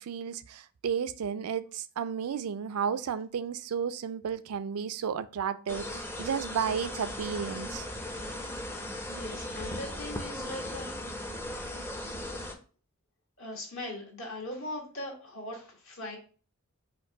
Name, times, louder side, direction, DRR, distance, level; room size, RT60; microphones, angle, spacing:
voice 1, 0.0-7.9, right 7 dB, 85° right, 0.4 m, -33 dB
sound 1, 5.7-12.6, left 1 dB, 10° left, 0.5 m, -37 dB
voice 2, 9.1-10.9 13.4-16.2, left 1 dB, 60° left, 1.6 m, -40 dB
4.5 x 2.5 x 4.6 m
head